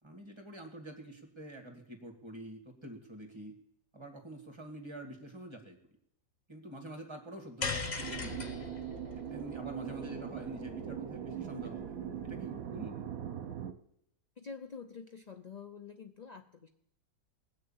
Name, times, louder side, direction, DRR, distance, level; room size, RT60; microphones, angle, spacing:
voice 1, 0.0-3.6 3.9-5.8 6.5-8.5 9.1-12.0 12.2-13.0, right 1 dB, 15° right, 4 dB, 2.2 m, -47 dB
sound 1, 7.6-12.0, left 4 dB, 30° left, 1.1 m, -41 dB
sound 2, 8.0-13.7, right 9 dB, 60° right, 1.4 m, -41 dB
voice 2, 14.4-16.7, left 5 dB, 60° left, 7 dB, 0.4 m, -47 dB
19.5 x 6.5 x 8.8 m, 0.73 s
omnidirectional pair, 1.7 m